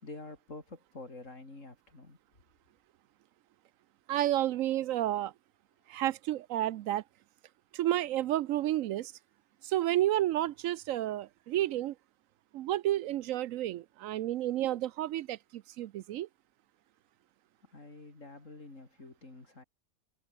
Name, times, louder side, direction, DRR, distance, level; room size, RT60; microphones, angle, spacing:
voice 1, 0.0-2.2 17.7-19.6, left 2 dB, 65° left, 4.7 m, -48 dB
voice 2, 4.1-5.3 5.9-7.0 7.7-9.1 9.6-11.9 12.5-16.3, right 13 dB, 75° right, 0.9 m, -31 dB
omnidirectional pair, 1.4 m